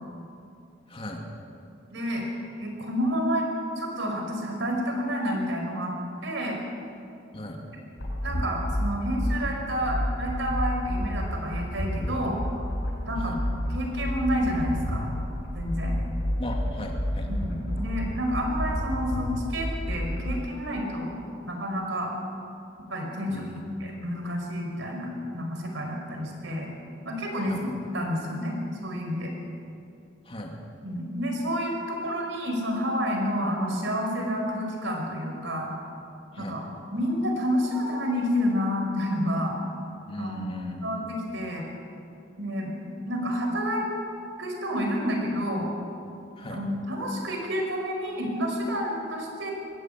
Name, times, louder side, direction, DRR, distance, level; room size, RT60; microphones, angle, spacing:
voice 1, 0.9-1.2 7.3-7.6 13.2-13.4 16.4-17.3 23.3-23.9 26.3-26.4 27.5-27.6 30.2-30.6 36.3-36.6 40.0-41.1 46.4-46.6, left 1 dB, 30° left, 1 dB, 2.8 m, -38 dB
voice 2, 1.9-2.2 2.6-3.5 3.8-5.9 6.2-6.6 8.2-12.4 13.0-13.3 13.7-15.1 15.5-16.0 17.3-21.2 21.4-22.1 22.9-23.4 23.8-26.7 27.0-27.7 27.9-29.3 30.8-35.7 36.4-36.6 36.9-39.5 40.2-41.7 42.4-42.7 43.1-43.9 44.4-45.7 46.5-49.5, equal, 70° right, 2 dB, 5.2 m, -29 dB
sound 1, 8.0-20.3, equal, 60° left, 5.3 m, -30 dB
22.5 x 16.5 x 8.3 m, 2.6 s
head